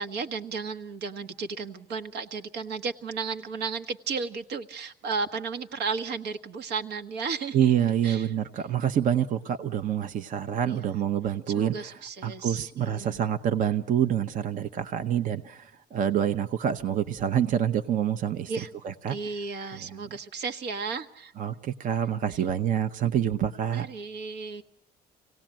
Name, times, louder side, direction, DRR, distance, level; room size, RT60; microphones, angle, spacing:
voice 1, 0.0-8.3 10.6-10.9 11.5-13.2 18.5-18.7 19.1-21.3 22.3-22.4 23.7-24.6, right 5 dB, 85° right, 6 dB, 1.4 m, -34 dB
voice 2, 7.5-11.9 12.2-18.5 18.8-19.2 21.4-23.9, right 9 dB, 50° right, 9 dB, 0.8 m, -27 dB
25.5 x 17.5 x 8.9 m, 0.86 s
cardioid pair, 110°, 17 cm